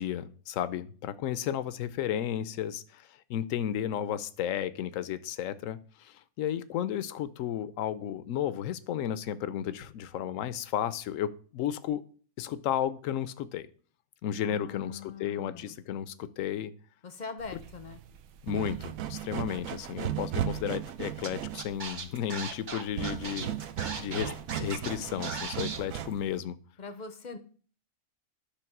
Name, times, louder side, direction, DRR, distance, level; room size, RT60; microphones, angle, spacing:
voice 1, 0.0-12.0 12.4-13.7 14.2-16.7 18.4-23.6 24.0-24.3 24.6-26.6, left 10 dB, 75° left, 15 dB, 0.9 m, -33 dB
voice 2, 14.4-15.8 17.0-18.0 26.8-27.4, left 4 dB, 45° left, 9 dB, 0.6 m, -42 dB
sound 1, 17.4-26.3, right 11 dB, 80° right, 1.0 m, -36 dB
Scratching (performance technique), 21.2-21.3 21.6-24.9 25.2-25.8, right 4 dB, 40° right, 0.8 m, -37 dB
10.0 x 3.4 x 5.9 m, 0.44 s
omnidirectional pair, 1.4 m